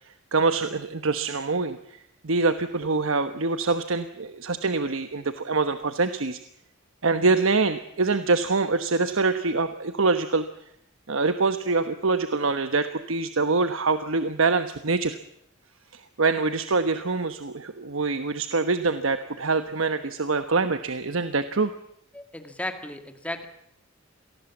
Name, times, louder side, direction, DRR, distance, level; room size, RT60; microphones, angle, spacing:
voice 1, 0.3-1.8 2.2-6.4 7.0-10.4 11.1-15.2 15.9-21.7, right 3 dB, 80° right, 9 dB, 1.1 m, -25 dB
voice 2, 22.1-23.5, left 1 dB, 5° left, 6 dB, 2.2 m, -35 dB
27.0 x 19.5 x 7.3 m, 0.77 s
head